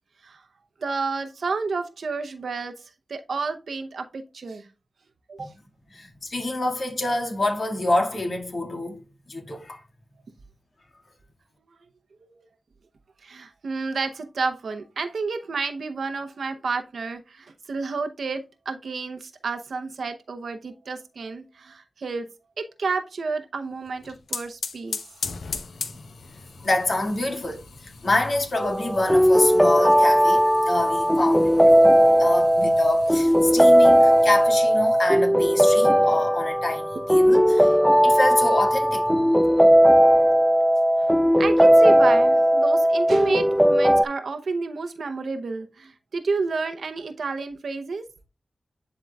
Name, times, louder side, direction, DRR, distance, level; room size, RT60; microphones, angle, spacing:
voice 1, 0.8-4.7 5.3-5.5 12.2-12.4 13.2-22.3 22.6-25.0 41.0-41.1 41.4-48.1, right 4 dB, 85° right, 0.7 m, -30 dB
voice 2, 5.9-9.0 9.3-9.8 25.8-26.0 26.6-37.8 38.0-39.2, left 2 dB, 65° left, 1.9 m, -27 dB
sound 1, 23.8-34.4, left 4 dB, 90° left, 0.7 m, -39 dB
sound 2, 28.6-44.1, equal, ahead, 0.3 m, -17 dB
11.0 x 3.8 x 2.3 m
cardioid pair, 45°, 0 cm